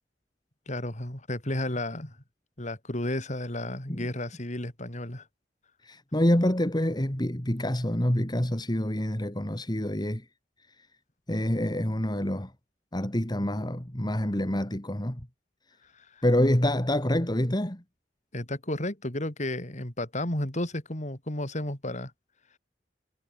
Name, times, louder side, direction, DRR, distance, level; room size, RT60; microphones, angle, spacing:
voice 1, 0.7-2.2 2.6-5.2 15.9-16.2 18.3-22.1, left 1 dB, 40° left, 4.3 m, -33 dB
voice 2, 5.8-10.2 11.3-12.5 12.9-15.3 16.2-17.8, left 1 dB, 25° left, 2.4 m, -27 dB
head